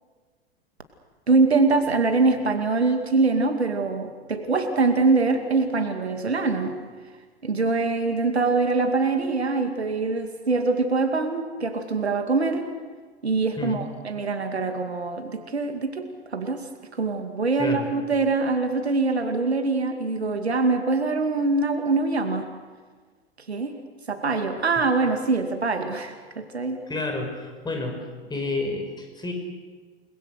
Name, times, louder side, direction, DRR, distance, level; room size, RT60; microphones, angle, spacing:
voice 1, 1.3-6.8 7.4-12.7 13.2-16.7 17.0-22.5 23.5-23.8 24.1-26.8, right 3 dB, 80° right, 6 dB, 2.4 m, -24 dB
voice 2, 26.9-29.3, left 2 dB, 15° left, 3 dB, 5.8 m, -30 dB
29.5 x 21.5 x 6.6 m, 1.4 s
figure-of-eight pair, 90°, 32 cm